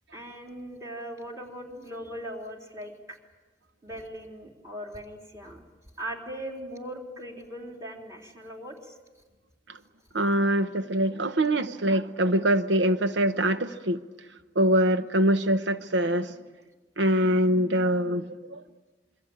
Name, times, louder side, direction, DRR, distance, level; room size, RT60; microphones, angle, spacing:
voice 1, 0.1-3.2 3.8-5.6 6.0-9.0, equal, 20° right, 1 dB, 3.7 m, -39 dB
voice 2, 10.1-14.0 14.5-16.3 17.0-18.6, right 1 dB, 90° right, 10 dB, 0.9 m, -24 dB
27.0 x 24.0 x 8.8 m, 1.3 s
head